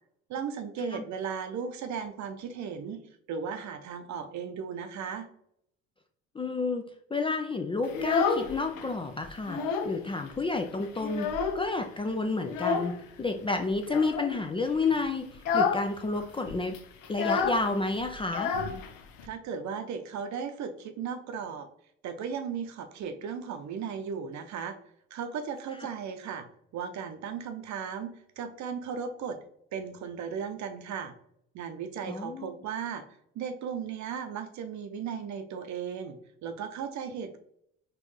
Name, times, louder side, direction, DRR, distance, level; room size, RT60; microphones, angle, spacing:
voice 1, 0.3-3.0 3.3-5.3 19.2-21.7 22.0-24.8 25.1-26.5 26.7-29.4 29.7-31.1 31.5-33.0 33.3-36.2 36.4-37.4, right 6 dB, 50° right, 8 dB, 0.7 m, -36 dB
voice 2, 6.3-16.8 17.1-18.6 25.8-25.9 32.1-32.5, left 3 dB, 15° left, 5 dB, 0.4 m, -30 dB
Child speech kid speaking, 7.8-8.9 9.2-10.0 10.3-10.4 10.7-11.8 12.5-13.0 13.8-14.3 14.7-14.9 15.3-15.9 16.1-16.2 16.5-19.3, left 5 dB, 60° left, 0.7 m, -29 dB
4.4 x 2.5 x 3.1 m, 0.71 s
hypercardioid pair, 60°, 36 cm